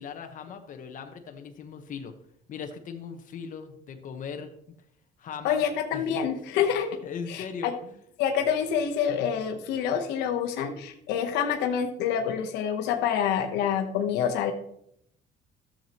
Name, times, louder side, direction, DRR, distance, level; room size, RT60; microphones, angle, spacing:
voice 1, 0.0-2.1 2.5-4.5 5.2-5.6 5.9-6.6 7.0-8.0, left 6 dB, 50° left, 6 dB, 1.1 m, -39 dB
voice 2, 5.4-6.9 7.3-7.7 8.2-14.5, left 8 dB, 90° left, 4 dB, 1.0 m, -27 dB
13.0 x 7.3 x 3.0 m, 0.72 s
cardioid pair, 110°, 17 cm